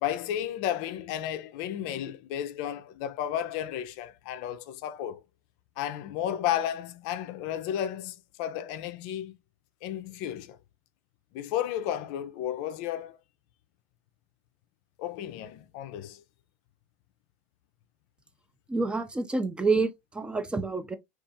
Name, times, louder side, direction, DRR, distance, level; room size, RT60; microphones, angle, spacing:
voice 1, 0.0-5.2 5.8-9.4 9.8-10.6 11.3-13.2 15.0-16.2, left 10 dB, 60° left, 0.4 m, -33 dB
voice 2, 18.7-21.0, right 3 dB, 10° right, 0.4 m, -28 dB
2.5 x 2.4 x 2.6 m
hypercardioid pair, 85°, 8 cm